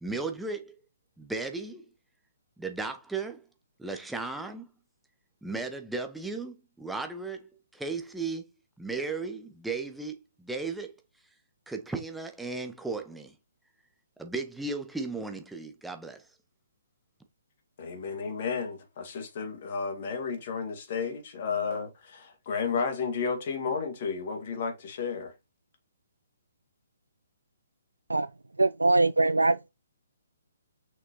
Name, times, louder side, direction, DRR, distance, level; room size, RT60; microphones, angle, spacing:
voice 1, 0.0-0.7 1.2-1.9 2.6-3.4 3.8-4.7 5.4-7.5 7.7-8.4 8.8-11.0 11.7-13.3 14.2-16.2, right 3 dB, 5° right, 0.9 m, -35 dB
voice 2, 17.8-25.3, left 5 dB, 40° left, 2.0 m, -32 dB
voice 3, 28.6-29.6, right 2 dB, 75° right, 0.3 m, -22 dB
6.1 x 6.1 x 3.0 m
figure-of-eight pair, 130°, 0 cm